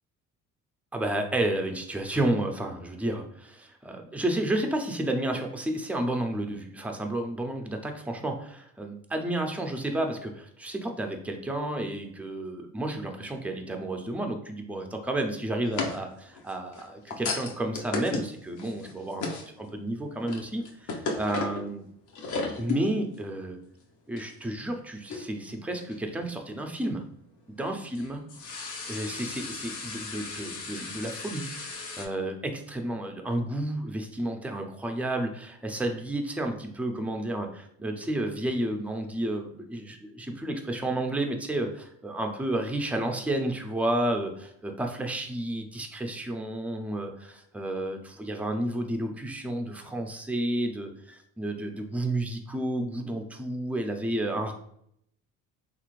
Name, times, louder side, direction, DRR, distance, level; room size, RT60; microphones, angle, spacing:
voice 1, 0.9-19.3 19.6-21.8 22.6-23.6 24.1-27.0 27.6-28.2 28.9-54.5, right 1 dB, 5° right, 4 dB, 0.5 m, -31 dB
sound 1, 15.6-19.6 20.0-21.7 22.1-22.8 23.1-23.2 24.2-24.3 25.1-25.5 25.9-26.0 27.6-32.1, left 4 dB, 60° left, 0.8 m, -35 dB
3.2 x 2.5 x 3.1 m, 0.70 s
supercardioid pair, 85°, 33 cm